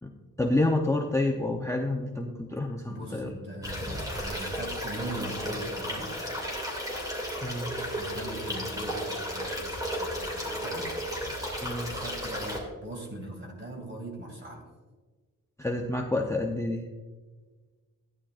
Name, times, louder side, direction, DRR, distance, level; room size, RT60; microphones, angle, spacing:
voice 1, 0.4-3.3 7.4-7.8 11.6-11.9 15.6-16.9, left 2 dB, 10° left, 1 dB, 0.7 m, -28 dB
voice 2, 2.9-6.2 8.0-11.0 11.9-14.7, right 1 dB, 35° right, 1 dB, 2.3 m, -40 dB
sound 1, 3.6-12.6, equal, 10° right, 2.5 m, -34 dB
14.5 x 10.0 x 2.5 m, 1.3 s
wide cardioid pair, 140°, 33 cm